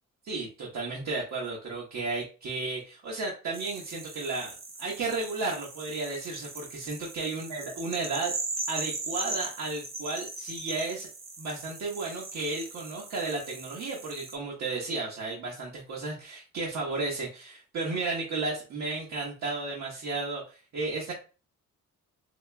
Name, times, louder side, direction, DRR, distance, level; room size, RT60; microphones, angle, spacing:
voice 1, 0.2-8.3 8.7-11.1 11.4-21.1, right 3 dB, 65° right, -3 dB, 1.2 m, -33 dB
sound 1, 3.5-14.4, right 3 dB, 45° right, 0.9 m, -39 dB
4.2 x 2.9 x 2.2 m, 0.34 s
cardioid pair, 90°, 30 cm